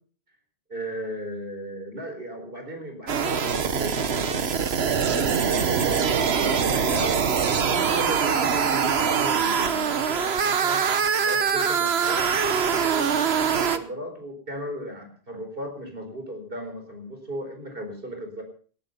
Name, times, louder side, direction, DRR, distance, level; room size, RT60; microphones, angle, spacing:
voice 1, 0.7-12.3 12.6-18.4, equal, 60° right, 5 dB, 4.4 m, -36 dB
sound 1, 3.1-13.8, right 6 dB, 85° right, 1.3 m, -23 dB
19.0 x 11.5 x 5.5 m, 0.42 s
omnidirectional pair, 1.0 m